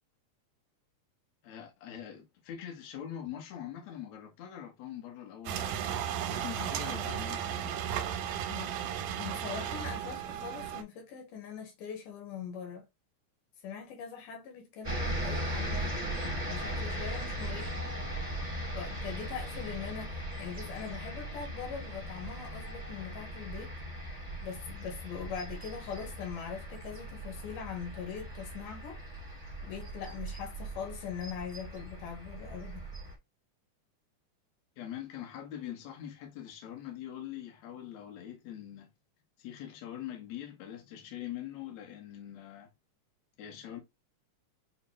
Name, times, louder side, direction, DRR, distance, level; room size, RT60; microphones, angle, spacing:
voice 1, 1.4-5.9 6.3-7.8 34.8-38.9 39.4-42.7 43.4-43.8, left 10 dB, 65° left, 2.2 m, -43 dB
sound 1, 5.5-10.8, right 9 dB, 85° right, 2.2 m, -35 dB
voice 2, 8.5-12.9 13.6-16.0 16.5-17.8 18.7-23.8 24.4-29.0 29.6-32.9, left 7 dB, 85° left, 3.0 m, -42 dB
Short Freight Train, 14.8-33.1, equal, 25° right, 0.8 m, -38 dB
6.7 x 2.3 x 3.0 m
omnidirectional pair, 3.7 m